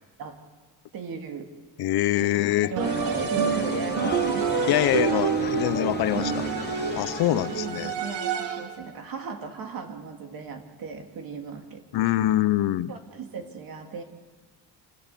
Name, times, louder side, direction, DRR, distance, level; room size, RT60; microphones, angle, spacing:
voice 1, 0.9-1.4 2.2-4.9 5.5-5.7 7.3-12.1 12.9-14.0, right 5 dB, 55° right, 4 dB, 2.7 m, -37 dB
voice 2, 1.8-2.7 4.7-7.9 11.9-12.9, left 14 dB, 65° left, 15 dB, 0.8 m, -25 dB
sound 1, 2.8-8.2, left 7 dB, 25° left, 0.6 m, -35 dB
sound 2, 2.8-8.8, right 7 dB, 85° right, 2.2 m, -28 dB
28.0 x 16.5 x 6.9 m, 1.4 s
cardioid pair, 155°, 41 cm